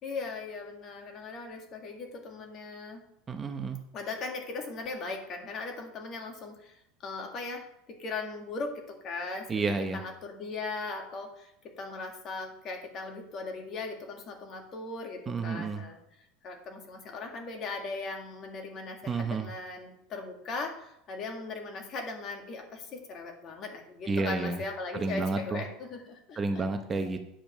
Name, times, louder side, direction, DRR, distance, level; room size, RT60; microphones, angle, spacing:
voice 1, 0.0-3.0 3.9-9.5 9.9-11.5 11.8-16.0 16.4-26.6 27.0-27.1, left 3 dB, 40° left, 3 dB, 1.9 m, -38 dB
voice 2, 3.3-3.8 9.5-10.0 15.3-15.8 19.1-19.5 24.1-24.6 24.9-25.6 26.4-27.2, right 3 dB, 20° right, 6 dB, 0.8 m, -30 dB
8.9 x 5.1 x 6.5 m, 0.78 s
supercardioid pair, 125°, 0 cm